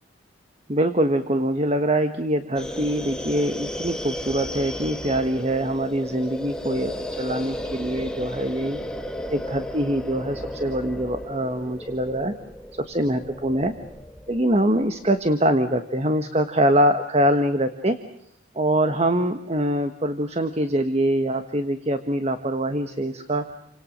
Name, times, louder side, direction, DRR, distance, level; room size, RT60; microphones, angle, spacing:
voice 1, 0.7-8.8 9.3-12.3 12.8-13.7 14.3-18.0 18.5-23.4, right 1 dB, 30° right, 8 dB, 1.4 m, -24 dB
sound 1, 2.6-15.3, equal, 5° left, 1.5 m, -34 dB
29.5 x 25.5 x 6.5 m, 0.68 s
head